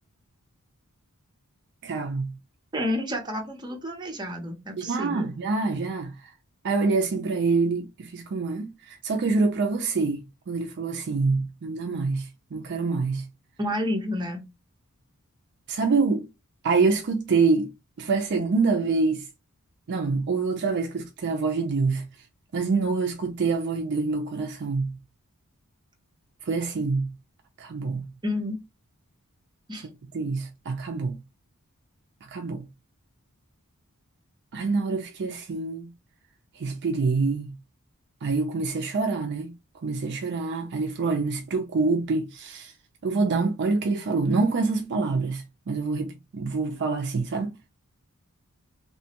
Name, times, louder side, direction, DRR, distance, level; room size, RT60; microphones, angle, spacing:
voice 1, 1.8-2.3 4.8-6.3 6.6-13.3 15.7-16.3 16.6-19.3 19.9-22.1 22.5-25.0 26.5-27.1 27.6-28.1 30.1-31.2 32.3-32.7 34.5-35.9 36.6-37.5 38.2-39.5 39.8-42.7 43.0-47.6, right 4 dB, 50° right, 0.4 m, -26 dB
voice 2, 2.7-5.3 13.6-14.4 28.2-28.6 29.7-29.9, left 1 dB, 20° right, 0.7 m, -30 dB
2.9 x 2.2 x 2.8 m
head